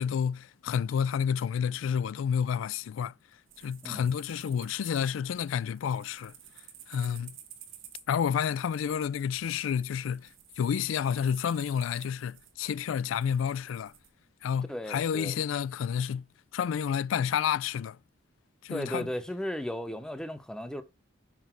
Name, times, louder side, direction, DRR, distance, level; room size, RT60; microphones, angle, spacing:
voice 1, 0.0-3.1 3.6-6.3 6.9-7.3 8.1-10.3 10.6-13.9 14.4-16.2 16.5-18.0 18.6-19.1, left 8 dB, 80° left, 0.3 m, -30 dB
sound 1, 3.5-14.1, right 10 dB, 85° right, 1.4 m, -53 dB
voice 2, 14.7-15.4 18.7-20.8, equal, 5° left, 0.8 m, -35 dB
6.0 x 5.3 x 4.4 m
head